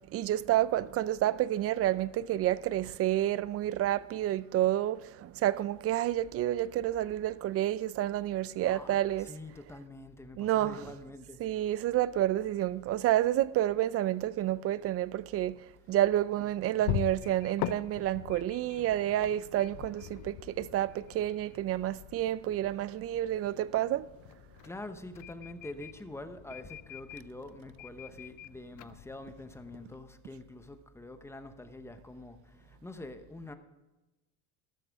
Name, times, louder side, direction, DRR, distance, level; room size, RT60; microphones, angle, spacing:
voice 1, 0.1-9.3 10.4-10.9 11.4-15.6 15.9-24.1, right 13 dB, 40° right, 0.4 m, -29 dB
voice 2, 8.6-11.4 24.6-33.6, left 2 dB, 5° left, 0.9 m, -45 dB
sound 1, 15.6-30.0, left 15 dB, 60° left, 0.6 m, -43 dB
13.0 x 13.0 x 3.5 m
cardioid pair, 130°, 36 cm